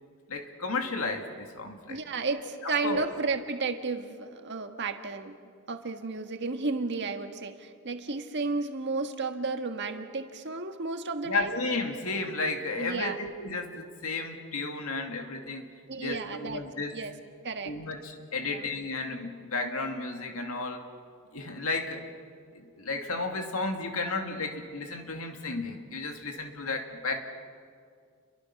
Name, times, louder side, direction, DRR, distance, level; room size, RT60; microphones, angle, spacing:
voice 1, 0.3-2.0 2.6-3.1 11.2-15.7 16.0-17.0 17.7-20.8 21.3-22.0 22.5-27.2, left 3 dB, 75° left, 4 dB, 2.5 m, -33 dB
voice 2, 1.9-5.4 5.7-11.6 12.8-13.2 15.9-16.6 16.9-17.1 17.4-17.7 18.4-18.6, right 3 dB, 55° right, 6 dB, 1.6 m, -33 dB
29.0 x 23.0 x 6.0 m, 2.1 s
head